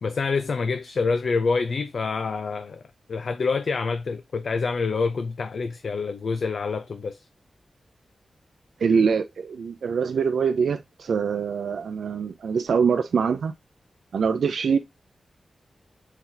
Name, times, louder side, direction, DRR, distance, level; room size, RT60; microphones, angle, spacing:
voice 1, 0.0-2.8 3.1-7.2, left 4 dB, 55° left, 0.4 m, -26 dB
voice 2, 8.8-13.5 14.1-14.8, right 6 dB, 80° right, 0.4 m, -24 dB
4.5 x 3.8 x 2.6 m
wide cardioid pair, 155°, 0 cm